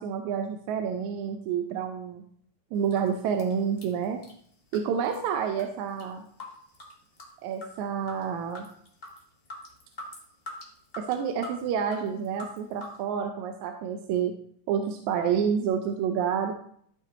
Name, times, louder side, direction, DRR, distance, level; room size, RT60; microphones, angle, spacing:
voice 1, 0.0-2.2 2.7-4.2 4.7-6.2 7.4-8.7 11.0-14.3 14.7-16.5, right 7 dB, 80° right, 5 dB, 2.0 m, -29 dB
sound 1, 2.8-3.1 3.4-4.4 4.7-5.3 5.6-6.1 6.4-7.8 8.1-8.2 8.5-13.0, left 1 dB, 35° left, 0.9 m, -43 dB
13.0 x 5.3 x 4.0 m, 0.63 s
omnidirectional pair, 3.4 m